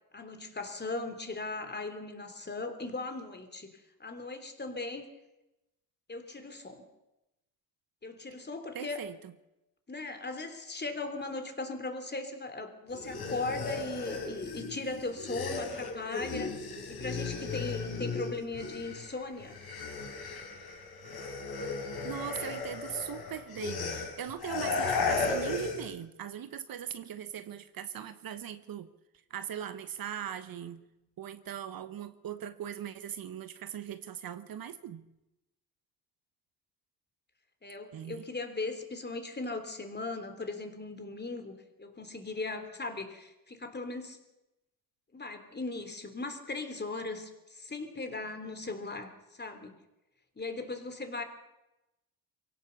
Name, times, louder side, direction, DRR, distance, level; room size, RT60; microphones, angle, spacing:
voice 1, 0.1-5.1 6.1-6.9 8.0-9.0 9.9-16.5 16.9-19.6 22.3-22.6 37.6-44.2 45.1-49.8 50.4-51.2, left 3 dB, 25° left, 7 dB, 3.5 m, -38 dB
voice 2, 8.7-9.3 22.0-28.9 29.3-30.8 31.2-35.1 37.9-38.2, right 9 dB, 55° right, 12 dB, 1.2 m, -40 dB
sound 1, 12.9-19.1 19.4-25.9, left 4 dB, 60° left, 5.3 m, -35 dB
23.0 x 17.0 x 7.1 m, 0.95 s
supercardioid pair, 65°, 43 cm